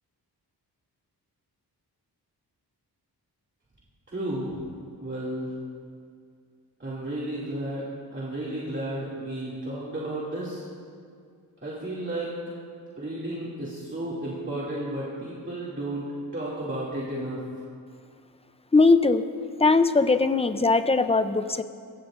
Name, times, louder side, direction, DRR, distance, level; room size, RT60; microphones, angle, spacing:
voice 1, 4.1-4.6 5.0-5.5 6.8-7.8 8.1-10.7 11.6-12.3 13.0-17.4, right 1 dB, 30° right, -8 dB, 2.5 m, -33 dB
voice 2, 18.7-19.2 19.6-21.6, left 3 dB, 15° left, 10 dB, 0.5 m, -20 dB
24.5 x 15.5 x 2.5 m, 2.2 s
wide cardioid pair, 125°, 41 cm